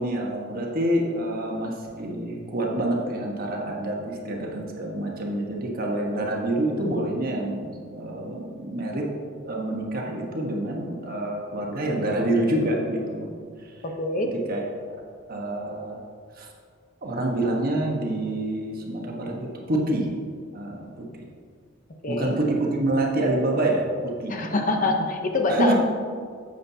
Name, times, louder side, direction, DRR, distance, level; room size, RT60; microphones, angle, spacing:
voice 1, 0.0-9.1 9.4-13.3 14.2-14.6 15.3-16.0 16.4-16.5 17.0-20.2 20.5-20.9 22.1-24.5 25.5-25.7, right 1 dB, 45° right, -1 dB, 1.3 m, -27 dB
voice 2, 13.8-14.3 22.0-22.4 24.3-25.7, left 2 dB, 40° left, 3 dB, 0.8 m, -25 dB
11.0 x 7.7 x 2.8 m, 2.1 s
head